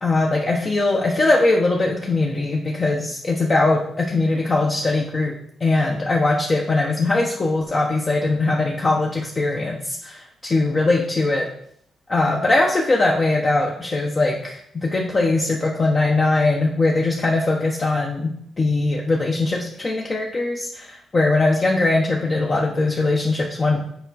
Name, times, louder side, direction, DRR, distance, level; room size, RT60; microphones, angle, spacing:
voice 1, 0.0-5.3 5.6-11.5 12.1-23.8, left 2 dB, 35° left, -2 dB, 0.9 m, -21 dB
7.1 x 4.6 x 4.1 m, 0.68 s
cardioid pair, 115°, 0 cm